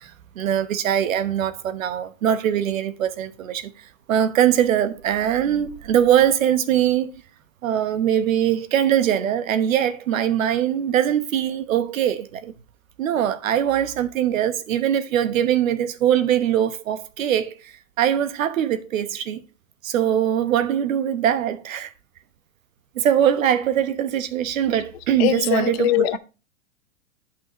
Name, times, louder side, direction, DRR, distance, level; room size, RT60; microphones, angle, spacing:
voice 1, 0.0-7.1 7.6-12.5 13.0-19.4 19.8-21.9 22.9-26.1, right 10 dB, 80° right, 1.1 m, -22 dB
voice 2, 25.2-26.2, left 14 dB, 50° left, 0.7 m, -21 dB
8.8 x 5.7 x 3.0 m
hypercardioid pair, 125°, 40 cm